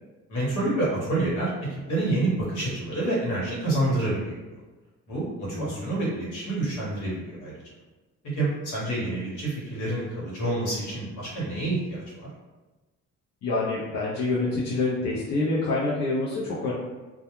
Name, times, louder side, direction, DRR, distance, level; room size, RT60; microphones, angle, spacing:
voice 1, 0.3-4.4 5.1-7.5 8.3-12.3, right 2 dB, 80° left, -6 dB, 1.2 m, -28 dB
voice 2, 5.5-6.0 13.4-16.7, left 2 dB, 60° left, -7 dB, 0.6 m, -27 dB
2.2 x 2.2 x 3.0 m, 1.2 s
cardioid pair, 90°, 30 cm